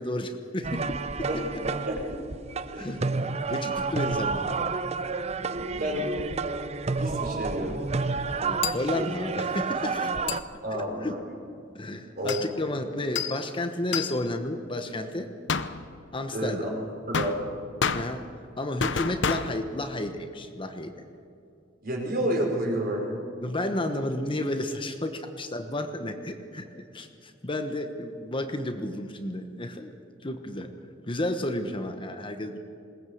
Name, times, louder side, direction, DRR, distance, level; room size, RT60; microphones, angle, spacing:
voice 1, 0.0-1.3 2.8-3.0 3.5-4.5 8.4-10.1 11.0-11.1 11.7-15.3 16.1-16.7 17.9-18.3 18.6-21.0 23.4-29.9 30.2-30.7 31.1-32.6, left 1 dB, 25° left, 6 dB, 1.2 m, -32 dB
sound 1, 0.6-10.4, right 4 dB, 35° right, 0.7 m, -30 dB
voice 2, 1.3-2.2 2.7-2.9 5.6-6.1 7.0-7.8 10.6-11.2 12.2-12.4 16.3-16.7 17.1-17.4 21.8-23.2, right 1 dB, 50° right, 0 dB, 4.7 m, -30 dB
sound 2, 8.6-8.9 10.3-10.4 12.3-12.5 13.1-13.5 13.9-14.2 15.5-16.1 17.1-18.5 18.8-19.8, left 6 dB, 70° left, 0.8 m, -30 dB
21.0 x 19.0 x 7.9 m, 2.6 s
head